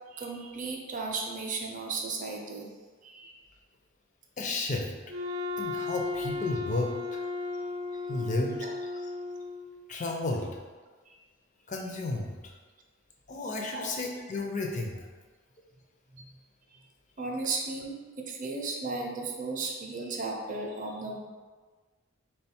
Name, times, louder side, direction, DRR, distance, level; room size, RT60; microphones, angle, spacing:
voice 1, 0.1-2.7 3.0-3.4 8.6-8.7 11.1-11.2 13.7-13.9 16.1-16.3 16.7-16.8 17.2-21.2, right 3 dB, 40° right, 1 dB, 0.5 m, -35 dB
voice 2, 4.4-4.9 5.6-7.2 8.1-8.6 9.9-10.5 11.7-12.5 13.3-15.0, left 2 dB, 35° left, 1 dB, 0.5 m, -32 dB
Wind instrument woodwind instrument, 5.1-9.8, left 3 dB, 90° right, 0.5 m, -35 dB
3.4 x 2.3 x 4.2 m, 1.4 s
head